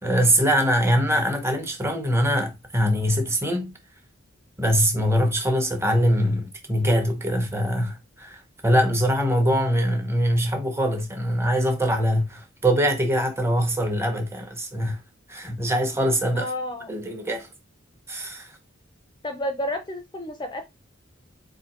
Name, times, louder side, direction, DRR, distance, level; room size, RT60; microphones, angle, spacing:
voice 1, 0.0-3.8 4.6-15.0 15.3-16.5 16.9-17.5 18.1-18.5, equal, 10° right, 0.9 m, -23 dB
voice 2, 16.3-16.9 19.2-20.7, left 1 dB, 20° left, 0.5 m, -31 dB
4.3 x 2.7 x 4.4 m
head